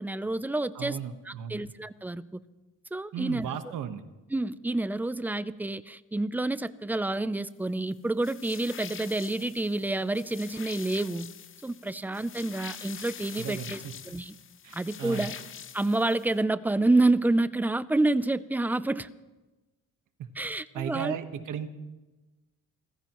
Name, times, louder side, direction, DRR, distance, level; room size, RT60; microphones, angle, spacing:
voice 1, 0.0-1.0 1.2-2.4 2.9-3.5 4.3-11.3 11.6-14.4 14.7-15.4 15.7-19.1 20.4-21.2, right 2 dB, 5° right, 15 dB, 0.4 m, -28 dB
voice 2, 0.7-1.7 3.1-4.0 13.4-13.9 14.6-15.3 20.2-21.7, right 9 dB, 75° right, 9 dB, 1.3 m, -36 dB
sound 1, 8.2-16.4, left 8 dB, 40° left, 0.7 m, -45 dB
29.0 x 15.0 x 3.0 m, 1.1 s
cardioid pair, 125°, 32 cm